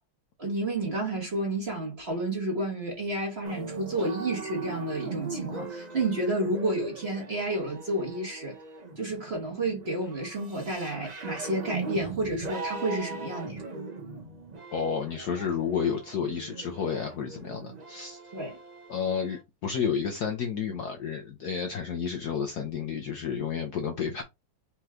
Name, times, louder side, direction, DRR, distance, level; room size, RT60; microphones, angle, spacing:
voice 1, 0.4-8.6 9.0-13.6 18.3-18.6, right 2 dB, 35° right, 1.4 m, -30 dB
sound 1, 3.4-19.4, right 3 dB, 55° right, 0.4 m, -40 dB
voice 2, 14.7-18.2 18.9-24.2, left 7 dB, 65° left, 1.0 m, -31 dB
4.4 x 3.1 x 3.6 m
omnidirectional pair, 2.3 m